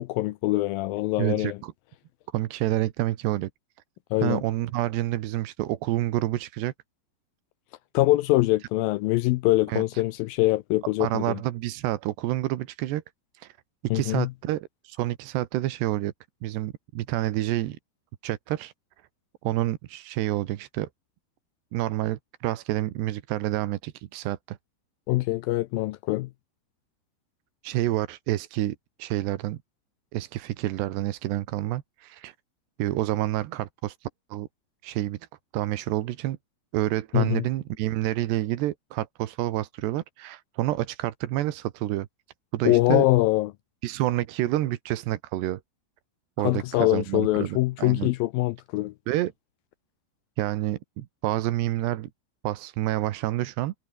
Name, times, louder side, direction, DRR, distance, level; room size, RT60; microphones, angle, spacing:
voice 1, 0.0-1.6 4.1-4.4 7.9-11.4 13.9-14.3 25.1-26.3 37.1-37.4 42.7-43.5 46.4-48.9, left 18 dB, 85° left, 2.1 m, -24 dB
voice 2, 1.2-1.7 2.3-3.5 4.2-6.7 9.7-10.0 11.0-13.0 13.3-13.6 13.9-16.1 16.4-17.8 18.2-18.7 19.4-20.9 21.7-24.6 27.6-29.6 30.1-32.4 32.8-34.5 34.8-35.3 35.5-36.4 36.7-42.1 42.5-43.1 43.8-45.6 46.4-48.1 49.1-49.3 50.4-52.1 52.4-53.7, right 15 dB, 85° right, 3.4 m, -28 dB
omnidirectional pair, 4.8 m